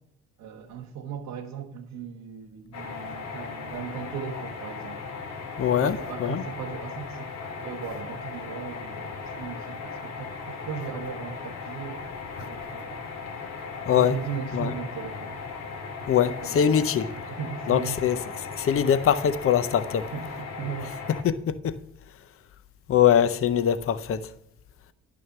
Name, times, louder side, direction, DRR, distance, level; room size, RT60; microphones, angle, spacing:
voice 1, 0.4-5.1 5.7-7.3 7.6-13.1 13.9-15.4 16.4-16.8 17.3-18.0 20.1-21.0, right 7 dB, 90° right, 1.1 m, -37 dB
sound 1, 2.7-21.2, left 5 dB, 65° left, 1.8 m, -37 dB
voice 2, 5.6-6.4 13.9-14.2 14.5-14.7 16.1-17.1 17.7-18.2 18.6-20.1 21.2-21.8 22.9-24.3, left 9 dB, 45° left, 0.6 m, -23 dB
11.0 x 6.3 x 7.0 m
cardioid pair, 90°, 30 cm